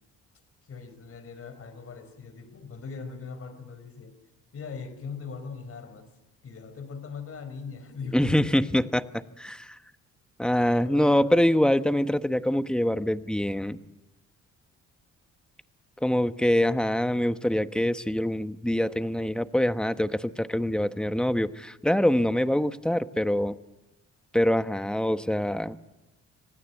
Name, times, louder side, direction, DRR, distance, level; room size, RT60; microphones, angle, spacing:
voice 1, 0.6-4.2 4.5-6.1 6.4-8.9 10.8-11.4, left 5 dB, 50° left, 12 dB, 4.5 m, -40 dB
voice 2, 8.1-9.1 9.4-9.8 10.4-13.8 16.0-23.6 24.3-25.7, left 1 dB, 5° left, 11 dB, 1.1 m, -24 dB
27.0 x 19.0 x 9.1 m, 1.0 s
cardioid pair, 90°, 30 cm